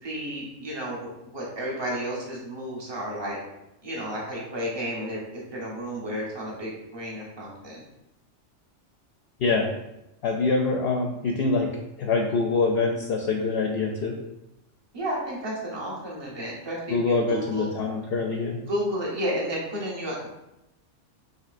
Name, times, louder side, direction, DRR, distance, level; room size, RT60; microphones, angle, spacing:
voice 1, 0.0-3.4 3.8-7.8 14.9-17.7 18.7-20.3, equal, 20° right, -4 dB, 1.0 m, -32 dB
voice 2, 9.4-9.8 10.2-11.7 12.0-14.2 16.9-18.6, left 3 dB, 65° left, 2 dB, 0.7 m, -25 dB
5.7 x 3.0 x 2.5 m, 0.90 s
omnidirectional pair, 1.3 m